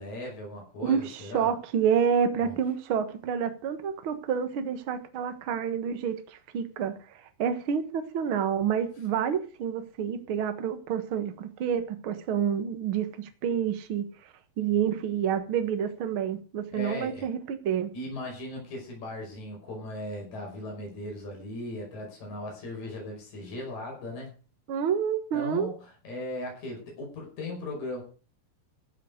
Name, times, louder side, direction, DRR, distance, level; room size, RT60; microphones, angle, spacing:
voice 1, 0.0-1.5 2.4-2.6 16.7-17.3 17.9-24.4 25.3-28.0, left 1 dB, 50° left, 6.7 m, -38 dB
voice 2, 0.8-14.0 14.6-17.9 24.7-25.7, right 8 dB, 55° right, 1.6 m, -28 dB
14.5 x 7.6 x 6.6 m
omnidirectional pair, 4.3 m